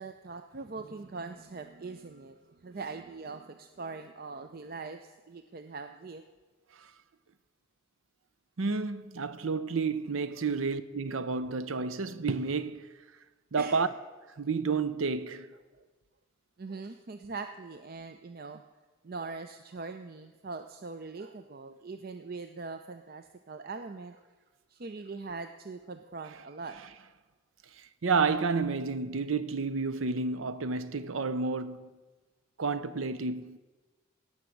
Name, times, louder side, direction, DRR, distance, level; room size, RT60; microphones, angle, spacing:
voice 1, 0.0-6.2 13.6-13.9 15.7-15.8 16.6-18.6 19.0-24.3 24.7-26.8, right 4 dB, 45° right, 0.5 m, -42 dB
voice 2, 8.6-12.9 13.5-13.9 14.4-15.5 28.0-31.9 32.6-33.6, right 4 dB, 80° right, 0.7 m, -30 dB
16.5 x 6.2 x 7.8 m
head